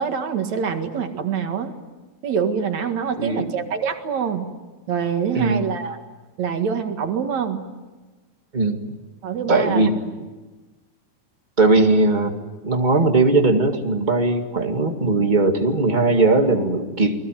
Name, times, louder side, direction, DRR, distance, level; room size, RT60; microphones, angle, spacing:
voice 1, 0.0-1.7 2.2-4.4 4.9-6.0 6.4-7.6 9.2-9.8, right 7 dB, 70° right, 6 dB, 3.1 m, -25 dB
voice 2, 3.2-3.5 5.3-5.7 8.5-8.9 9.5-10.0 11.6-12.3 12.6-17.1, right 3 dB, 20° right, 4 dB, 1.8 m, -19 dB
29.0 x 21.5 x 9.2 m, 1.2 s
omnidirectional pair, 3.4 m